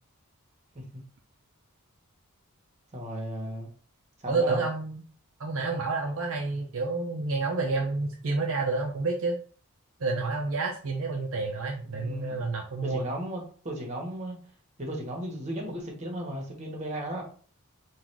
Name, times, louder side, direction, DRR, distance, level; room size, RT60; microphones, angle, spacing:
voice 1, 2.9-3.7 4.2-4.6 11.9-12.4 12.8-14.4 14.8-17.2, equal, 30° right, 1.3 m, -35 dB
voice 2, 4.3-5.0 5.4-9.4 10.0-13.1, right 3 dB, 60° right, 0.6 m, -29 dB
3.9 x 2.5 x 4.5 m
head